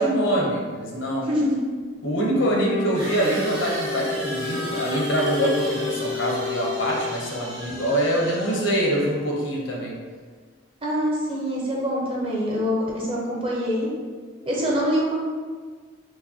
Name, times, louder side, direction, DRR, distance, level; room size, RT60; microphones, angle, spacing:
voice 1, 0.0-1.3 2.0-10.0, right 1 dB, 70° left, -2 dB, 0.8 m, -24 dB
voice 2, 1.2-1.6 10.8-13.9 14.5-15.2, equal, 25° right, -4 dB, 0.6 m, -25 dB
Wind instrument woodwind instrument, 2.3-7.5, left 5 dB, 45° left, 0.4 m, -32 dB
sound 1, 2.9-9.1, right 1 dB, 70° right, 1.1 m, -36 dB
4.7 x 2.2 x 2.7 m, 1.5 s
head